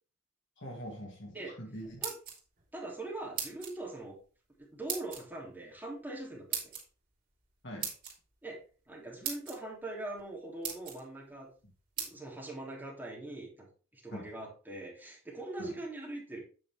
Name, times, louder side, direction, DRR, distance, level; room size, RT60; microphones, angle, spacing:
voice 1, 0.6-2.0 7.6-7.9 14.1-14.3 15.6-15.8, equal, 60° left, 0 dB, 2.6 m, -43 dB
sound 1, 1.8-2.6 3.4-3.8 4.9-5.2 6.5-6.8 7.8-8.1 8.9-9.0 9.2-9.6 10.2-10.3 10.6-11.0 12.0-12.1, right 7 dB, 40° right, 3.2 m, -37 dB
voice 2, 2.7-4.2 4.6-6.7 8.4-8.6 8.9-11.5 12.0-13.7 13.9-16.4, right 2 dB, 10° right, -3 dB, 3.2 m, -42 dB
8.7 x 6.7 x 3.6 m, 0.37 s
head